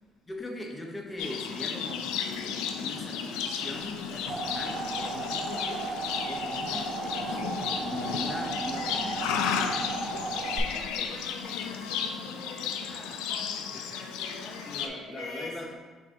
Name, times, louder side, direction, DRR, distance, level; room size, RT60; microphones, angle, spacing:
voice 1, 0.3-9.8 13.7-13.9 14.6-15.6, left 1 dB, 20° left, 1 dB, 0.8 m, -41 dB
sound 1, 1.1-8.7, right 1 dB, 80° right, 1.0 m, -53 dB
Livestock farm animals working animals, 1.2-14.9, left 7 dB, 85° left, 0.3 m, -33 dB
sound 2, 3.9-10.6, right 3 dB, 40° right, 0.5 m, -35 dB
voice 2, 10.3-15.6, left 2 dB, 60° left, -4 dB, 0.8 m, -44 dB
5.6 x 2.6 x 3.5 m, 1.4 s
supercardioid pair, 80°, 0 cm